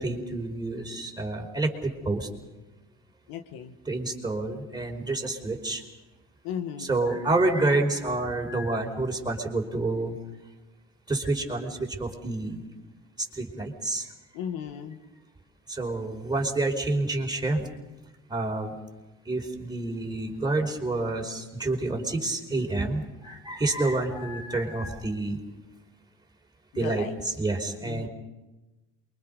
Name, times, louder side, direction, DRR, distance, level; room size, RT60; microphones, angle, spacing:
voice 1, 0.0-2.3 3.9-5.8 6.8-10.1 11.1-12.6 13.3-14.1 15.7-17.7 18.3-18.7 19.2-25.4 26.7-28.1, right 2 dB, 10° right, 1 dB, 4.9 m, -28 dB
voice 2, 3.3-3.7 6.4-6.9 14.3-15.0 26.7-27.1 27.8-28.1, left 8 dB, 75° left, 7 dB, 2.0 m, -35 dB
28.5 x 24.0 x 5.4 m, 1.1 s
supercardioid pair, 95°, 35 cm